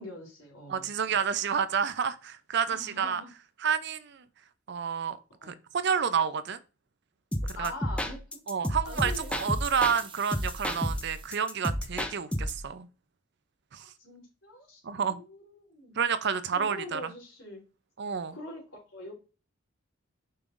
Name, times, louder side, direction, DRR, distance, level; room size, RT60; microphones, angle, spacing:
voice 1, 0.0-1.2 2.7-3.3 5.4-5.5 7.5-8.2 8.8-9.4 14.0-16.0 16.5-17.6 18.3-19.1, left 1 dB, 85° left, 3.6 m, -44 dB
voice 2, 0.7-3.2 3.6-4.3 4.7-5.2 5.5-6.6 7.6-7.7 8.5-12.9 13.7-13.9 14.8-15.2 16.0-17.1 18.0-18.4, right 7 dB, 60° right, 0.6 m, -29 dB
sound 1, 7.3-10.0 10.3-12.7, equal, 5° left, 0.5 m, -32 dB
sound 2, 8.8-11.6, right 6 dB, 25° right, 0.8 m, -49 dB
6.8 x 5.4 x 2.5 m
head